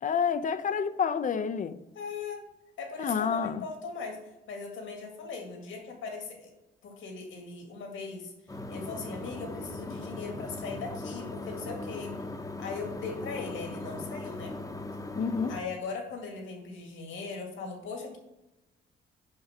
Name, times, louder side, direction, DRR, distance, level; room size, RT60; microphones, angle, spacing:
voice 1, 0.0-1.8 3.0-3.6 15.2-15.5, left 6 dB, 40° left, 0.6 m, -28 dB
voice 2, 1.9-2.4 2.8-6.5 6.8-8.3 8.7-12.1 12.6-14.6 15.5-18.2, left 4 dB, 80° left, 2.1 m, -39 dB
sound 1, 8.5-15.6, left 2 dB, 15° left, 0.9 m, -39 dB
6.6 x 5.5 x 6.0 m
cardioid pair, 90°, 20 cm